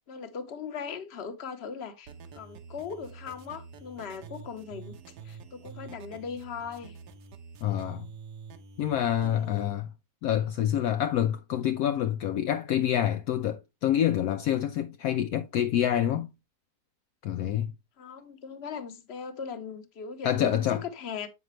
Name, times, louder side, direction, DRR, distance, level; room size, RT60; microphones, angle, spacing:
voice 1, 0.1-5.0 5.2-7.0 9.2-9.7 18.0-21.3, left 6 dB, 45° left, 1.1 m, -39 dB
sound 1, 2.1-9.6, right 5 dB, 80° right, 1.5 m, -47 dB
voice 2, 7.6-8.1 8.8-9.9 10.2-16.3 17.2-17.7 20.2-20.8, left 10 dB, 70° left, 1.0 m, -27 dB
7.7 x 5.9 x 3.1 m
omnidirectional pair, 1.7 m